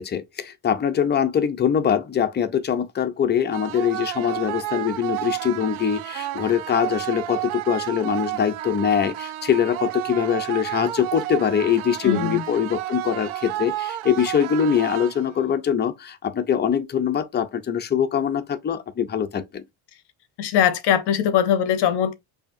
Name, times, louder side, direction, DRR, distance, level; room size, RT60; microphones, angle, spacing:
voice 1, 0.0-19.6, left 8 dB, 20° left, 0.5 m, -23 dB
sound 1, 3.5-15.5, right 15 dB, 70° right, 0.6 m, -31 dB
voice 2, 12.0-12.4 20.4-22.2, left 9 dB, 55° left, 0.7 m, -21 dB
7.0 x 2.8 x 2.5 m
cardioid pair, 145°, 49 cm